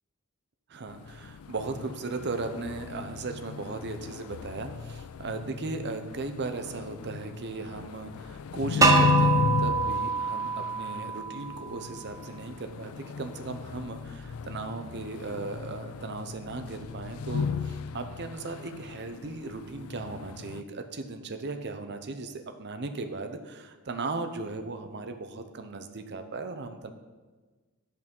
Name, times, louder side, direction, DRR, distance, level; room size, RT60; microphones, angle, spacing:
voice 1, 0.7-26.9, right 3 dB, 50° right, 7 dB, 0.7 m, -37 dB
sound 1, 0.9-20.6, left 5 dB, 75° left, 0.4 m, -35 dB
sound 2, 8.8-11.7, right 3 dB, 15° right, 0.7 m, -25 dB
10.5 x 5.5 x 5.3 m, 1.3 s
head